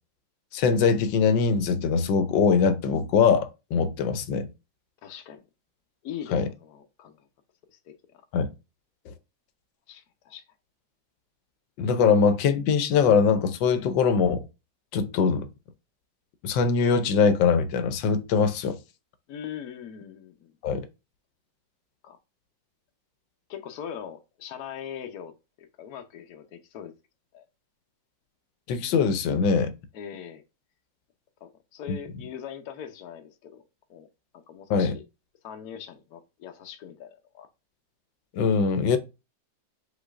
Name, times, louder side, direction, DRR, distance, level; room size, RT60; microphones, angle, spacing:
voice 1, 0.5-4.5 6.3-6.5 8.3-8.5 9.1-9.2 11.8-14.4 14.9-15.5 16.4-18.8 20.6-20.9 28.7-29.7 31.9-32.0 34.7-34.9 38.3-39.0, left 5 dB, 85° left, 1.4 m, -22 dB
voice 2, 5.0-5.4 6.0-7.3 7.7-7.9 9.9-10.4 19.3-20.5 22.0-22.2 23.5-26.9 27.3-27.5 29.9-30.4 31.4-33.6 33.9-34.1 34.3-35.0 35.4-37.5, left 8 dB, 60° left, 1.2 m, -41 dB
5.0 x 4.1 x 2.4 m
omnidirectional pair, 2.0 m